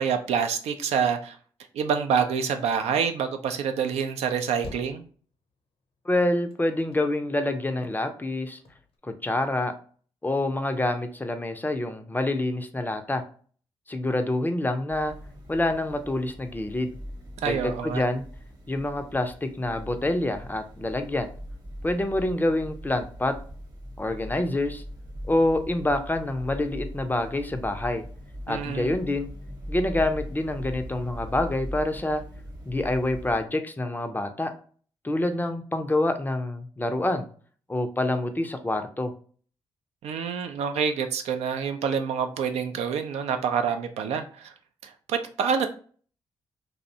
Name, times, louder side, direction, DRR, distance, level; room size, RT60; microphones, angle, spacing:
voice 1, 0.0-1.4 1.7-5.0 17.4-18.0 28.5-28.9 40.0-44.5 44.8-45.7, right 7 dB, 65° right, 7 dB, 0.4 m, -27 dB
sound 1, 4.6-5.5 5.8-7.4 7.7-7.8 8.0-8.1 8.5-9.0, left 3 dB, 55° left, 0.6 m, -46 dB
voice 2, 6.1-8.6 9.0-9.7 10.2-13.2 13.9-15.1 15.5-17.0 17.4-18.2 18.7-21.3 21.8-23.3 24.0-24.8 25.3-28.0 28.5-29.3 29.7-32.2 32.7-34.5 35.0-37.3 37.7-39.1, left 1 dB, 15° left, 7 dB, 0.4 m, -27 dB
sound 2, 14.9-33.4, equal, 35° right, 1.0 m, -40 dB
2.5 x 2.0 x 2.7 m, 0.42 s
hypercardioid pair, 40°, 12 cm